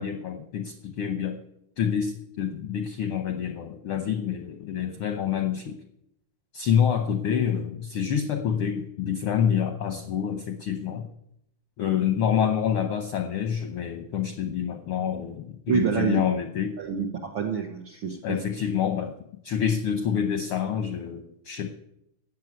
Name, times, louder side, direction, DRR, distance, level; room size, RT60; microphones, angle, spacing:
voice 1, 0.0-1.4 1.8-5.8 6.5-11.1 11.8-16.8 18.2-19.1 19.4-21.7, left 8 dB, 70° left, 7 dB, 1.3 m, -27 dB
voice 2, 15.7-16.2 16.8-18.4, right 7 dB, 60° right, 2 dB, 1.3 m, -27 dB
14.0 x 7.6 x 9.3 m, 0.77 s
omnidirectional pair, 3.6 m